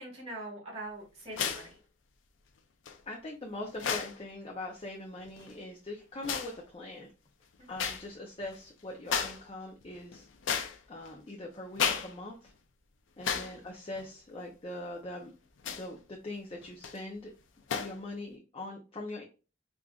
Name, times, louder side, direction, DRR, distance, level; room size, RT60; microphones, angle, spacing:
voice 1, 0.0-1.7 7.6-7.7 13.3-13.5, right 2 dB, 35° right, -3 dB, 1.6 m, -43 dB
sound 1, 1.3-1.7 2.9-3.0 3.7-4.2 5.3-5.6 6.2-6.6 7.8-8.1 8.4-8.6 9.1-9.5 9.8-11.1 11.7-12.2 12.5-12.6 13.2-13.6 14.0-14.1 15.6-16.0 16.6-17.0 17.7-18.0, left 7 dB, 90° left, 0.5 m, -33 dB
voice 2, 3.1-7.1 7.7-10.3 10.9-12.5 13.2-15.3 15.7-17.3 17.8-19.2, left 2 dB, 30° left, 0 dB, 0.5 m, -42 dB
4.9 x 2.5 x 2.3 m, 0.33 s
head